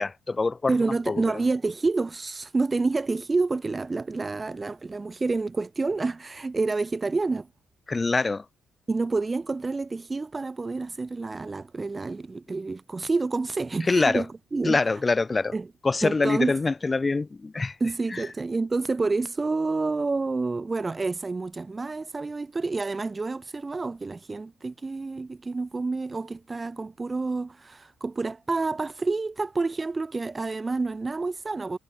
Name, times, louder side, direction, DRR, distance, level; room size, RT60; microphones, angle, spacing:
voice 1, 0.0-0.7 1.1-1.2 7.9-8.4 13.9-14.2 14.6-15.5 15.8-17.7 18.1-18.2, left 3 dB, 20° left, 0.7 m, -24 dB
voice 2, 0.7-7.5 8.9-15.0 15.5-15.7 16.0-16.5 17.8-31.8, right 3 dB, 20° right, 0.5 m, -28 dB
cardioid pair, 145°, 0 cm